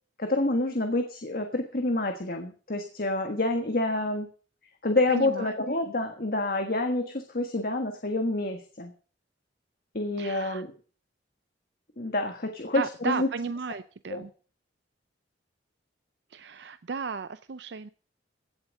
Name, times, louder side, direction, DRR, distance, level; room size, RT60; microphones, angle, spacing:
voice 1, 0.2-4.3 4.8-8.9 9.9-10.7 12.0-13.3 14.1-14.2, left 2 dB, 50° left, 5 dB, 1.5 m, -28 dB
voice 2, 5.1-5.5 10.2-10.6 12.7-14.3 16.3-17.9, right 5 dB, 65° right, 12 dB, 0.5 m, -34 dB
16.5 x 7.9 x 6.4 m, 0.41 s
head